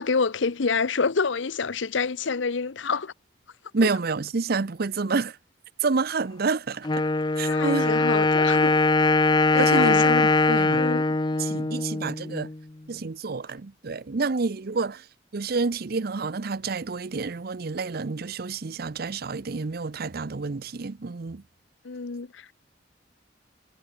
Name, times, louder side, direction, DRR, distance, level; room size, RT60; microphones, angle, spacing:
voice 1, 0.0-3.1 7.5-8.8 9.5-10.2 10.7-11.0 21.8-22.5, left 4 dB, 75° left, 0.7 m, -27 dB
voice 2, 3.7-5.4 5.8-7.0 7.4-8.0 9.6-10.1 10.5-10.9 11.4-12.5 12.9-15.1 15.3-21.4, right 4 dB, 55° right, 0.6 m, -28 dB
Wind instrument woodwind instrument, 6.8-12.6, left 3 dB, 25° left, 0.6 m, -22 dB
head